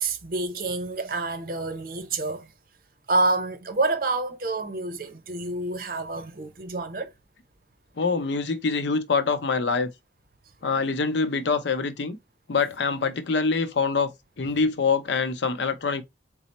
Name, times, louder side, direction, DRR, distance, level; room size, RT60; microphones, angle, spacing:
voice 1, 0.0-2.5 3.1-7.1, right 3 dB, 50° right, 0.7 m, -28 dB
voice 2, 8.0-9.9 10.6-12.2 12.5-14.1 14.4-16.0, left 4 dB, 75° left, 0.6 m, -25 dB
4.1 x 2.0 x 4.0 m
head